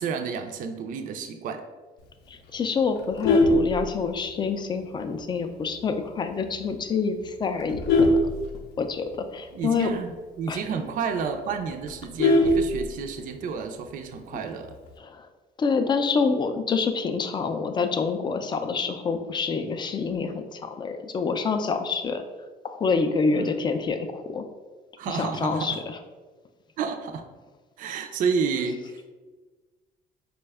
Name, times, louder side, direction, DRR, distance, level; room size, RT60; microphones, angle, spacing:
voice 1, 0.0-1.6 9.5-14.7 23.3-23.6 25.0-25.8 26.8-27.2 27.8-29.1, right 5 dB, 55° right, 6 dB, 0.4 m, -30 dB
voice 2, 2.3-8.2 8.8-9.9 10.5-10.6 14.3-14.4 15.0-15.3 15.6-22.2 22.6-24.4 25.1-26.0, left 5 dB, 25° left, 7 dB, 0.3 m, -27 dB
Vehicle horn car horn honking, 3.0-4.5 4.9-5.2 5.5-5.6 6.0-6.1 6.4-6.8 7.3-9.1 9.5-9.6 9.9-10.0 10.4-10.5 10.9-11.0 11.2-13.3 14.4-14.9, left 2 dB, 75° left, 0.6 m, -22 dB
4.1 x 2.2 x 3.4 m, 1.3 s
cardioid pair, 110°, 17 cm